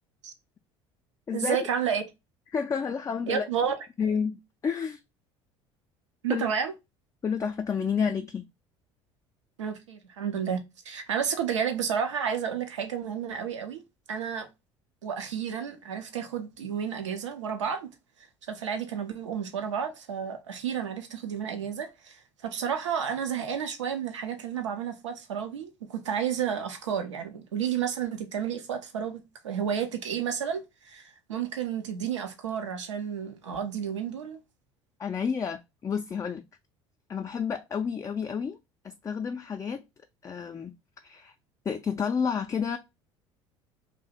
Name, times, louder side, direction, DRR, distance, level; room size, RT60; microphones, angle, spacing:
voice 1, 1.3-2.0 3.3-3.7 6.2-6.7 9.6-10.6 10.8-13.8 14.1-14.5 15.0-17.9 18.5-34.4, right 8 dB, 85° right, 0.6 m, -31 dB
voice 2, 2.5-3.5 4.0-5.0 6.3-6.5 7.2-8.5 35.0-36.4 37.1-38.6 38.8-39.8 40.2-40.7 41.0-41.3 41.7-42.8, left 6 dB, 20° left, 0.3 m, -30 dB
2.7 x 2.1 x 3.9 m
hypercardioid pair, 65°, 15 cm